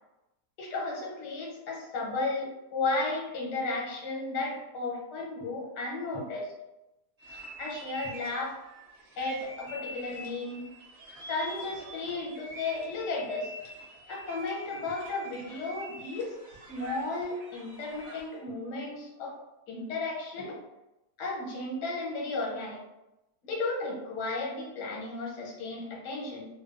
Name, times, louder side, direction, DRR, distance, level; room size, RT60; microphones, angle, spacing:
voice 1, 0.6-6.5 7.6-8.6 9.2-10.6 11.3-13.5 14.1-16.4 16.7-19.4 19.7-20.6 21.2-22.8 23.4-26.5, left 3 dB, 80° left, -2 dB, 1.3 m, -34 dB
sound 1, 7.2-18.4, right 1 dB, 55° right, 0.8 m, -46 dB
2.7 x 2.2 x 2.3 m, 0.95 s
omnidirectional pair, 1.7 m